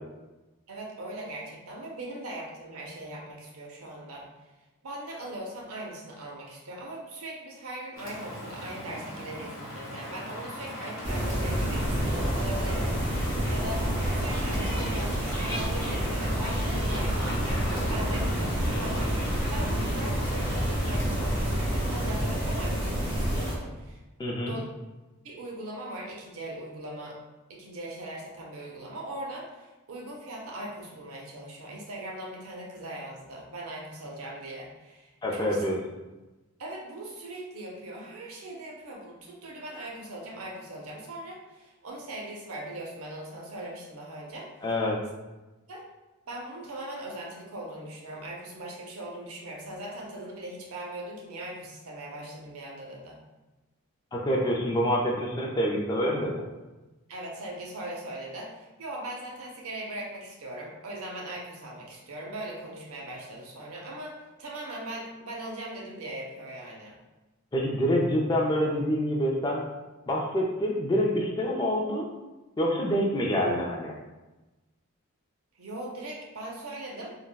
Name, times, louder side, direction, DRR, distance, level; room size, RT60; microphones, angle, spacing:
voice 1, 0.7-4.3 4.8-12.9 13.2-17.4 17.7-24.0 24.4-24.7 25.2-27.2 27.5-35.7 36.6-44.5 45.7-45.8 46.3-53.2 57.1-67.0 75.5-77.2, right 1 dB, 80° right, -1 dB, 0.6 m, -40 dB
Rain, 8.0-22.3, left 1 dB, 75° left, 1.2 m, -40 dB
sound 1, 11.0-23.5, equal, 25° right, 0.9 m, -28 dB
voice 2, 24.2-24.5 35.2-35.7 44.6-45.0 54.1-56.5 67.5-69.6 70.1-72.1 72.6-73.9, equal, 20° left, -1 dB, 0.3 m, -26 dB
3.4 x 2.1 x 2.2 m, 1.1 s
head